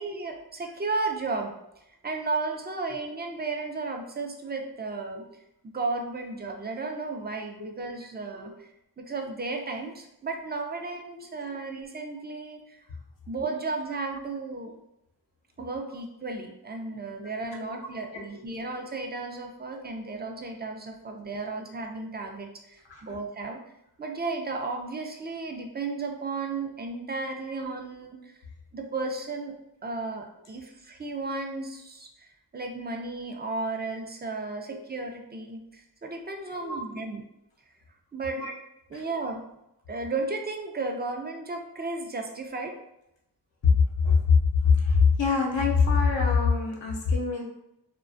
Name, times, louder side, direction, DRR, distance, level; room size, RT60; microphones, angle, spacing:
voice 1, 0.0-1.5 2.0-5.3 5.6-8.7 9.0-12.8 13.3-14.7 15.6-23.6 24.0-28.4 28.7-29.5 29.8-37.2 38.1-38.4 38.9-39.4 39.9-42.8, right 3 dB, 25° right, 3 dB, 0.3 m, -34 dB
voice 2, 17.2-17.6 17.9-18.2 22.9-23.2 34.6-34.8 36.5-36.8 38.3-38.5 38.9-39.1 43.6-47.4, left 5 dB, 85° left, 0 dB, 0.6 m, -24 dB
2.4 x 2.2 x 2.5 m, 0.82 s
wide cardioid pair, 45°, 43 cm